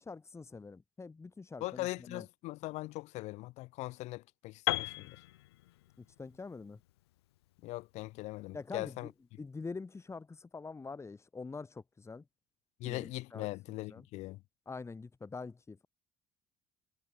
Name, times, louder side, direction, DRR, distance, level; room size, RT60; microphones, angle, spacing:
voice 1, 0.0-2.3 6.0-6.8 8.5-9.1 9.4-12.2 12.8-14.1 14.7-15.9, left 4 dB, 20° left, 2.0 m, -45 dB
voice 2, 1.6-5.2 7.6-9.1 12.8-14.4, left 19 dB, 55° left, 1.2 m, -40 dB
Piano, 4.7-8.6, left 17 dB, 70° left, 0.7 m, -38 dB
figure-of-eight pair, 60°, 14 cm